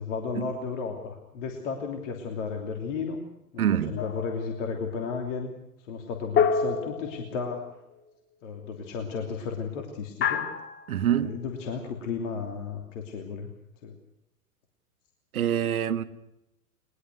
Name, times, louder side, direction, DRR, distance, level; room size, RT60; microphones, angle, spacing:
voice 1, 0.0-3.2 3.5-5.5 5.8-7.8 8.4-10.5 11.0-13.5 13.8-13.9, left 5 dB, 50° left, 3.1 m, -34 dB
voice 2, 3.6-4.0 10.9-11.3 15.3-16.0, right 10 dB, 65° right, 1.5 m, -25 dB
sound 1, 4.0-4.6 6.4-7.7 10.2-11.0, left 7 dB, 25° left, 1.8 m, -27 dB
21.5 x 21.0 x 6.3 m
figure-of-eight pair, 95°, 46 cm